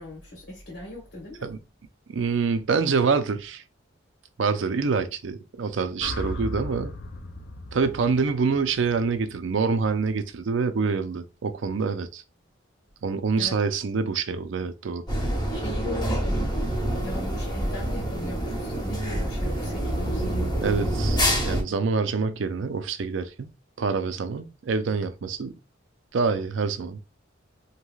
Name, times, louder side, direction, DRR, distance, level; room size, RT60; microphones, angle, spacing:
voice 1, 0.0-1.5 13.3-13.5 15.5-16.5 17.0-20.5, left 1 dB, 70° left, 1.2 m, -39 dB
voice 2, 2.1-3.6 4.4-6.9 7.7-12.2 13.0-15.0 20.6-25.6 26.1-27.0, right 5 dB, 75° right, 0.5 m, -26 dB
sound 1, 6.0-10.2, left 1 dB, 55° left, 0.4 m, -38 dB
sound 2, 15.1-21.6, equal, 20° left, 1.0 m, -26 dB
3.1 x 2.8 x 2.3 m
head